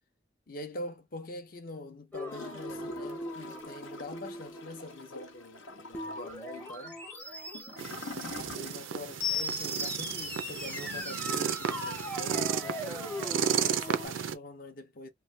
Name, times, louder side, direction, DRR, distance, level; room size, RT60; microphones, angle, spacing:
voice 1, 0.5-7.0 8.5-12.8 13.2-15.1, left 2 dB, 45° left, 0.7 m, -44 dB
sound 1, 2.1-14.1, left 2 dB, 10° left, 0.6 m, -39 dB
Gurgling / Toilet flush, 2.3-9.1 9.4-9.5, left 2 dB, 90° left, 0.9 m, -46 dB
sound 2, 7.8-14.3, right 8 dB, 80° right, 0.4 m, -33 dB
3.1 x 2.1 x 3.2 m
head